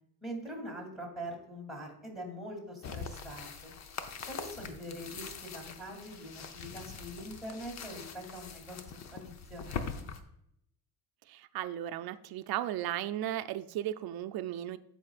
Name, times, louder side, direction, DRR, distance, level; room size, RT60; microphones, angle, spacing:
voice 1, 0.2-3.7 4.3-8.8 9.1-10.0, equal, ahead, 2.9 m, -43 dB
sound 1, 2.8-10.2, left 6 dB, 45° left, 0.7 m, -43 dB
voice 2, 11.3-14.8, right 12 dB, 65° right, 0.6 m, -35 dB
14.5 x 5.3 x 2.4 m
cardioid pair, 125°, 39 cm